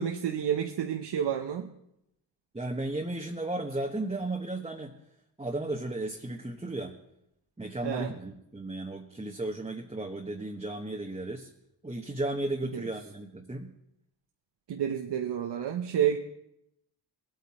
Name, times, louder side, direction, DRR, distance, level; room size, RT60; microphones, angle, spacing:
voice 1, 0.0-1.7 7.8-8.1 12.7-12.9 14.7-16.2, right 9 dB, 65° right, 4 dB, 0.9 m, -30 dB
voice 2, 2.5-4.9 5.4-7.0 7.6-11.5 11.8-13.7, right 2 dB, 15° right, 2 dB, 1.1 m, -34 dB
19.0 x 8.6 x 4.2 m, 0.81 s
cardioid pair, 65°, 44 cm